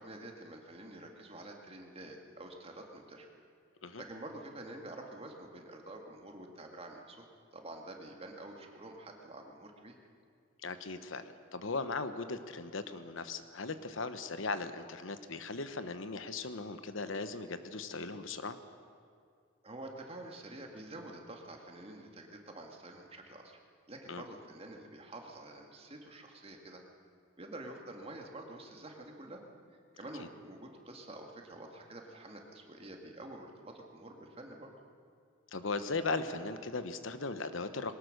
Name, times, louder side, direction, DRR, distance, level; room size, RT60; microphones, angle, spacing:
voice 1, 0.0-3.3 4.0-10.0 19.6-23.6 23.9-26.8 27.4-29.4 29.7-34.7, right 1 dB, 30° right, 2 dB, 2.1 m, -48 dB
voice 2, 10.6-18.6 24.1-24.3 30.2-30.3 35.5-38.0, left 3 dB, 75° left, 10 dB, 1.1 m, -38 dB
21.5 x 19.0 x 6.7 m, 2.3 s
head